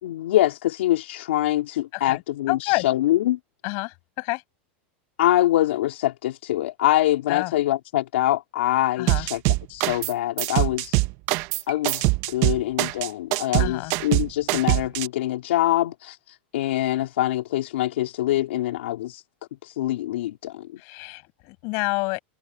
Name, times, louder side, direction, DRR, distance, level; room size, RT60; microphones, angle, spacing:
voice 1, 0.0-3.4 5.2-9.4 9.7-11.0 11.7-19.2 19.6-20.8, left 14 dB, 85° left, 3.9 m, -24 dB
voice 2, 2.5-2.9 3.6-4.4 7.3-7.5 9.0-9.3 13.6-13.9 20.8-22.2, left 29 dB, 50° left, 7.9 m, -28 dB
sound 1, 9.1-10.1 10.4-15.1, right 21 dB, 45° right, 0.8 m, -23 dB
supercardioid pair, 150°, 6 cm